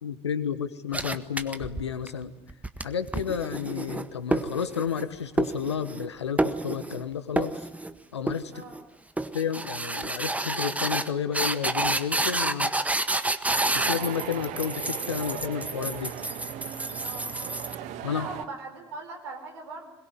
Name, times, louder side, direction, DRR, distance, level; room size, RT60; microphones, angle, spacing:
voice 1, 0.0-2.3 2.8-7.7 8.1-8.6 9.3-12.7 13.7-16.1 18.0-18.3, left 7 dB, 80° left, 12 dB, 1.4 m, -31 dB
sound 1, 0.9-2.1 2.5-5.1 5.4-6.1 6.4-7.0 7.4-7.9 8.3-8.8 9.2-17.8, right 2 dB, 10° right, 1.5 m, -29 dB
sound 2, 13.4-18.5, right 10 dB, 55° right, 1.6 m, -38 dB
voice 2, 17.0-17.4 18.0-19.9, right 3 dB, 75° right, 6 dB, 4.4 m, -40 dB
22.0 x 22.0 x 9.5 m, 0.84 s
figure-of-eight pair, 60°, 14 cm